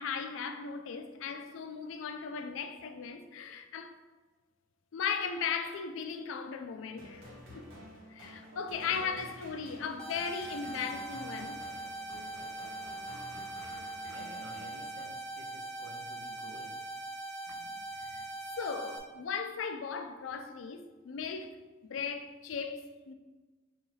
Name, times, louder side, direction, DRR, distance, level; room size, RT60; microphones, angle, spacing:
voice 1, 0.0-4.0 4.9-7.2 7.5-7.7 8.1-11.6 17.5-17.7 18.0-18.3 18.6-23.1, left 6 dB, 75° left, 0.4 m, -37 dB
sound 1, 7.0-15.3, equal, 90° right, 1.1 m, -51 dB
voice 2, 8.5-9.2 14.1-16.8, right 3 dB, 65° right, 0.5 m, -51 dB
sound 2, 10.0-19.0, right 2 dB, 5° left, 0.5 m, -41 dB
5.7 x 2.3 x 3.1 m
head